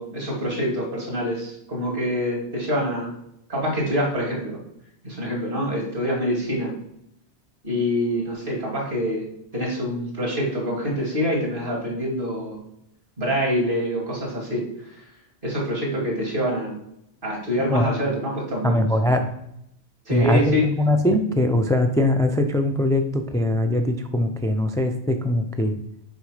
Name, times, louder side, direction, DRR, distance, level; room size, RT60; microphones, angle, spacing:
voice 1, 0.0-3.2 3.5-4.6 5.0-6.7 7.6-9.3 9.5-12.6 13.2-15.0 15.4-16.8 17.2-18.8 20.1-20.6, equal, 50° right, -2 dB, 2.5 m, -25 dB
voice 2, 18.6-19.3 20.1-25.7, left 1 dB, 5° left, 5 dB, 0.3 m, -21 dB
6.7 x 5.1 x 4.9 m, 0.78 s
omnidirectional pair, 1.1 m